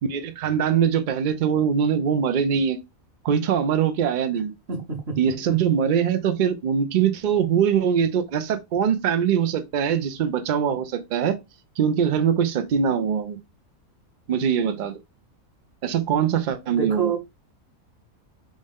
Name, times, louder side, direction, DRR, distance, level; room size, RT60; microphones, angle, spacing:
voice 1, 0.0-2.8 3.2-4.5 5.2-11.4 11.8-13.4 14.3-15.0 15.8-17.1, right 8 dB, 90° right, 0.4 m, -22 dB
voice 2, 4.7-5.6 16.7-17.2, right 6 dB, 50° right, 1.2 m, -28 dB
3.5 x 2.6 x 3.5 m
omnidirectional pair, 1.5 m